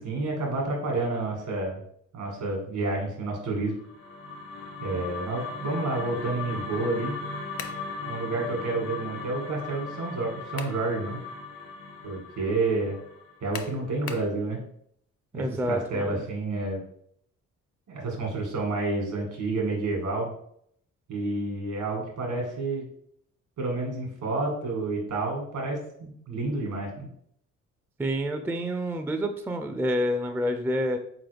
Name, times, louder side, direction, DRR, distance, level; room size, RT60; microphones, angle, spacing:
voice 1, 0.0-1.8 2.1-3.8 4.8-7.2 8.1-11.2 12.0-13.0 13.4-14.6 15.3-16.8 17.9-20.3 21.1-22.8 23.6-27.1, right 2 dB, 75° right, -1 dB, 1.9 m, -29 dB
sound 1, 3.7-14.0, left 3 dB, 85° left, 1.2 m, -38 dB
sound 2, 7.6-7.9 10.2-10.9 11.3-11.4 13.5-14.4, left 7 dB, 50° left, 0.6 m, -39 dB
voice 2, 15.3-16.2 28.0-31.0, equal, 5° right, 7 dB, 0.4 m, -28 dB
4.0 x 3.9 x 3.4 m, 0.68 s
cardioid pair, 90°, 30 cm